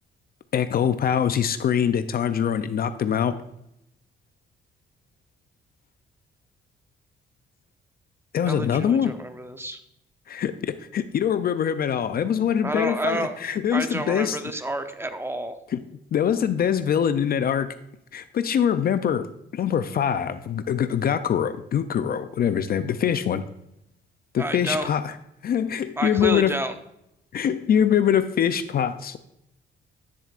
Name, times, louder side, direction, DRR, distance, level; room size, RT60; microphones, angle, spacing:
voice 1, 0.5-3.3 8.3-9.1 10.3-14.4 15.7-15.8 16.1-17.7 18.1-23.4 24.3-25.1 25.4-26.5 27.3-29.2, left 8 dB, 50° left, 12 dB, 0.5 m, -23 dB
voice 2, 8.5-9.8 12.6-13.4 13.7-15.6 24.4-24.9 26.0-26.7, right 1 dB, 10° right, 8 dB, 0.7 m, -29 dB
10.0 x 6.9 x 2.5 m, 0.80 s
cardioid pair, 90°, 20 cm